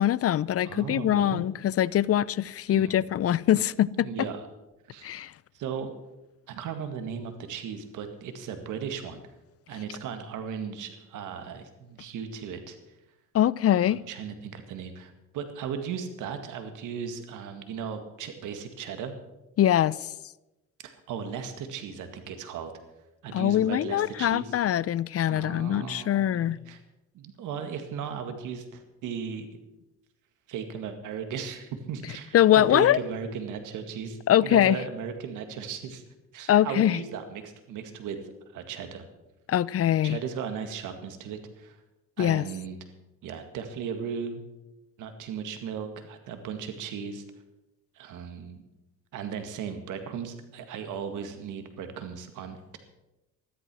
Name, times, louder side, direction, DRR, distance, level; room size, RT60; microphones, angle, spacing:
voice 1, 0.0-4.3 5.0-5.3 13.3-14.0 19.6-20.0 23.3-26.6 32.3-33.0 34.3-34.8 36.5-37.0 39.5-40.2 42.2-42.4, left 11 dB, 50° left, 0.5 m, -23 dB
voice 2, 0.7-1.4 2.7-3.0 3.9-4.5 4.9-5.1 5.5-5.9 6.5-9.2 9.7-12.8 13.9-19.1 20.8-22.7 23.2-24.5 25.3-26.8 27.1-29.5 30.5-36.0 36.3-38.2 38.5-39.0 39.9-41.8 42.2-42.8 43.2-44.4 45.0-47.2 48.0-48.6 49.1-52.8, right 7 dB, 85° right, 2.0 m, -36 dB
14.0 x 12.0 x 6.2 m
cardioid pair, 90°, 30 cm